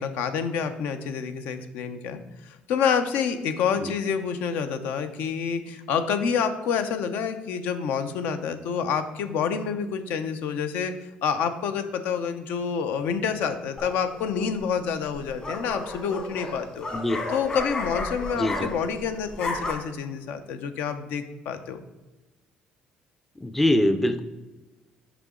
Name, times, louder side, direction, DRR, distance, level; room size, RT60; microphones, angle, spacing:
voice 1, 0.0-10.9 11.2-16.9 17.3-21.8, left 6 dB, 80° left, 9 dB, 0.6 m, -28 dB
sound 1, 13.8-14.2 15.1-19.0 19.3-19.7, left 2 dB, 35° left, 1.3 m, -32 dB
voice 2, 18.4-18.7 23.4-24.2, left 1 dB, 5° left, 9 dB, 0.4 m, -23 dB
6.7 x 5.0 x 3.7 m, 1.1 s
cardioid pair, 130°, 3 cm